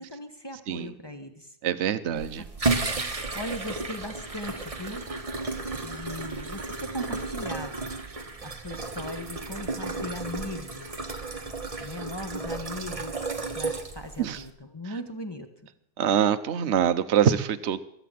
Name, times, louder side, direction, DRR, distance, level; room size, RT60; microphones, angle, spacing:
voice 1, 0.0-1.6 2.2-5.0 5.7-7.9 8.4-10.9 11.8-13.2 13.5-15.5, left 1 dB, 15° left, 6 dB, 1.0 m, -39 dB
voice 2, 1.6-2.4 14.2-14.4 16.0-17.8, right 9 dB, 55° right, 11 dB, 0.8 m, -24 dB
sound 1, 2.1-14.5, right 3 dB, 20° right, 1.1 m, -33 dB
22.0 x 8.1 x 7.6 m, 0.74 s
omnidirectional pair, 2.1 m